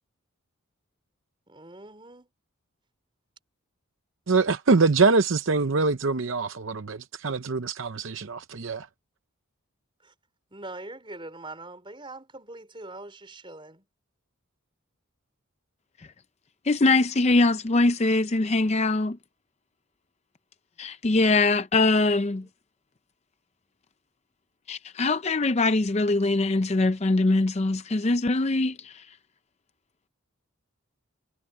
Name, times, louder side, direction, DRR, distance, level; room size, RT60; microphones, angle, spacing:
voice 1, 1.5-2.3 10.0-10.1 10.5-13.8 22.4-22.5, right 2 dB, 25° right, 4.8 m, -42 dB
voice 2, 4.3-8.9, right 4 dB, 60° right, 0.7 m, -24 dB
voice 3, 16.7-19.2 20.8-22.4 24.7-29.0, left 2 dB, 30° left, 0.5 m, -22 dB
head